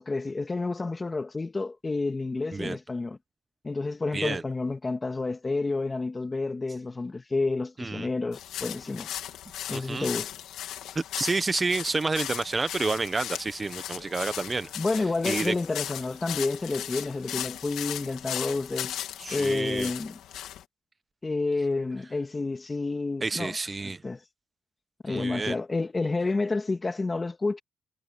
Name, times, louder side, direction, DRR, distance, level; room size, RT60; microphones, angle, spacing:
voice 1, 0.0-3.2 3.6-9.2 9.7-10.3 14.8-18.9 19.3-20.2 21.2-23.6 24.0-24.2 25.0-27.6, left 3 dB, 25° left, 2.4 m, -29 dB
voice 2, 7.8-8.1 9.7-10.1 10.9-14.7 15.2-15.5 19.2-19.9 23.2-24.0 25.1-25.6, right 3 dB, 25° right, 1.1 m, -29 dB
sound 1, 8.3-20.6, left 11 dB, 85° left, 3.0 m, -37 dB
cardioid pair, 90°, 0 cm